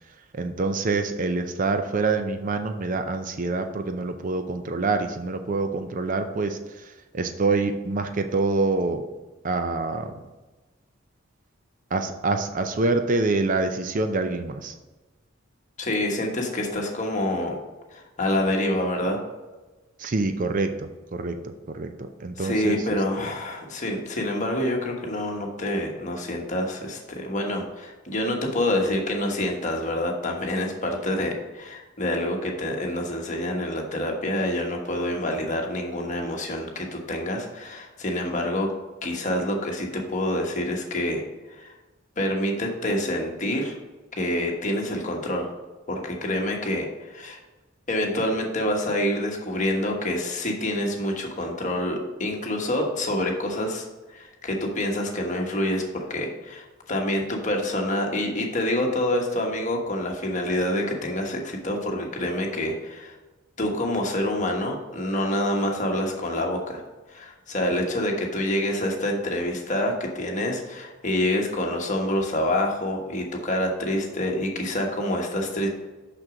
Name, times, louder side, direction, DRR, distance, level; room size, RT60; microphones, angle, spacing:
voice 1, 0.3-9.0 9.4-10.1 11.9-14.7 20.0-22.8 23.2-23.3, right 3 dB, 40° right, 7 dB, 0.5 m, -26 dB
voice 2, 15.8-17.6 17.9-19.2 22.4-38.7 39.0-41.2 41.5-41.7 42.2-43.8 44.2-45.5 45.9-47.4 47.9-55.8 56.1-63.2 63.6-66.8 67.1-75.7, left 1 dB, 40° left, 1 dB, 1.3 m, -27 dB
6.3 x 6.1 x 5.0 m, 1.2 s
head